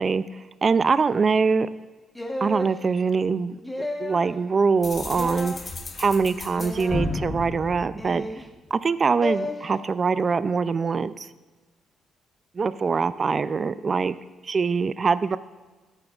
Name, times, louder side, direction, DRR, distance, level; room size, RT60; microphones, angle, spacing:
voice 1, 0.0-1.7 2.4-3.6 4.0-5.5 6.0-8.3 8.7-11.3 12.5-14.1 14.4-15.4, right 5 dB, 40° right, 15 dB, 0.3 m, -23 dB
sound 1, 2.1-2.7 3.6-4.3 5.1-5.6 6.5-7.1 8.0-8.5 9.2-9.5, left 1 dB, 10° left, 1.1 m, -32 dB
sound 2, 4.8-8.7, left 2 dB, 35° left, 0.9 m, -34 dB
13.0 x 8.8 x 2.4 m, 1.3 s
cardioid pair, 90°, 0 cm